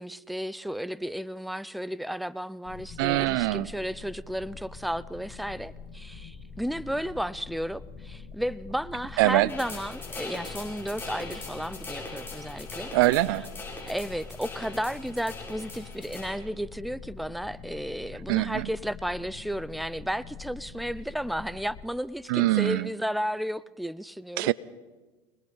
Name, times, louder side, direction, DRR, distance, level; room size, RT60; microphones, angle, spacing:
voice 1, 0.0-12.9 13.3-13.5 13.9-24.5, equal, ahead, 0.6 m, -33 dB
sound 1, 2.6-21.9, left 5 dB, 55° left, 1.9 m, -45 dB
voice 2, 3.0-3.7 9.2-9.5 12.9-13.5 18.3-18.6 22.3-22.9 24.4-24.5, right 19 dB, 75° right, 0.6 m, -23 dB
sound 2, 9.5-16.3, left 3 dB, 20° left, 7.1 m, -41 dB
25.0 x 20.0 x 5.5 m
hypercardioid pair, 80°, 12 cm